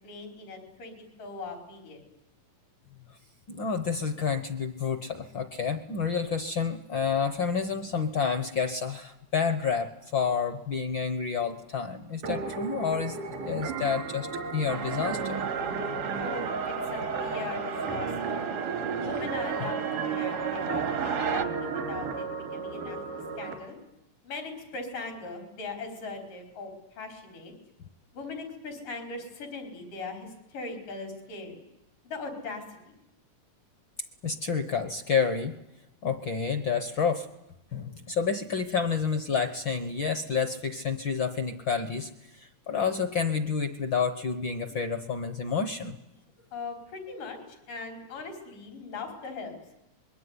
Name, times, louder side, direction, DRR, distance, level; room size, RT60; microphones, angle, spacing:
voice 1, 0.0-2.0 16.2-18.5 19.0-23.8 24.2-27.5 28.1-31.6 32.0-33.0 46.5-49.6, left 3 dB, 90° left, 5 dB, 6.2 m, -40 dB
voice 2, 3.5-13.2 13.4-15.5 19.6-19.7 34.2-35.5 36.0-37.3 37.7-46.0, left 6 dB, 65° left, 11 dB, 1.2 m, -29 dB
sound 1, 12.2-23.5, right 5 dB, 85° right, 4.2 m, -34 dB
sound 2, 14.7-21.4, right 7 dB, 65° right, 0.8 m, -35 dB
25.0 x 21.5 x 9.7 m, 0.88 s
omnidirectional pair, 3.6 m